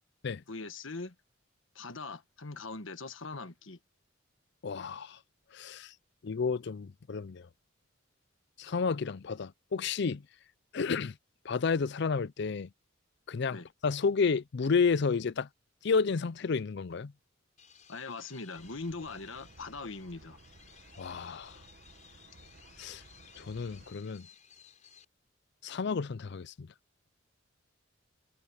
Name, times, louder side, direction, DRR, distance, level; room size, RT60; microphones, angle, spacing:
voice 1, 0.5-1.1 1.7-3.8 13.5-13.6 17.9-20.4, left 3 dB, 75° left, 1.4 m, -41 dB
voice 2, 4.6-5.2 5.5-5.9 6.2-7.5 8.6-10.2 10.7-11.2 11.4-12.7 13.3-15.5 15.8-17.1 21.0-21.6 22.8-23.0 23.4-24.3 25.6-26.7, left 5 dB, 55° left, 0.5 m, -31 dB
sound 1, 17.6-25.0, left 8 dB, 35° left, 5.9 m, -58 dB
sound 2, 18.5-23.9, right 2 dB, 50° right, 1.2 m, -57 dB
head